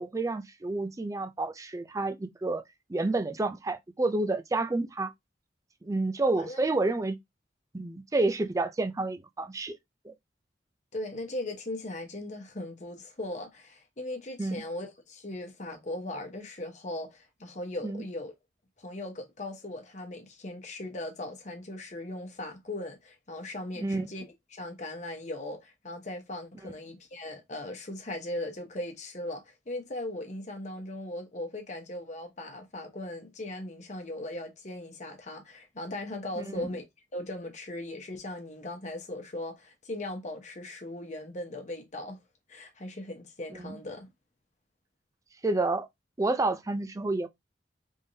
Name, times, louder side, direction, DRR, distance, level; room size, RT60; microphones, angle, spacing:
voice 1, 0.0-2.6 2.9-5.1 5.8-7.2 7.7-9.8 10.0-10.1 14.4-14.6 17.8-18.0 23.8-24.1 36.4-36.7 43.5-43.8 45.4-45.9 46.2-47.3, right 2 dB, 20° right, 0.4 m, -29 dB
voice 2, 6.3-6.7 10.9-18.3 18.8-24.2 24.5-36.8 37.1-42.2 42.5-44.1, left 1 dB, 40° left, 1.1 m, -38 dB
3.6 x 3.5 x 2.6 m
head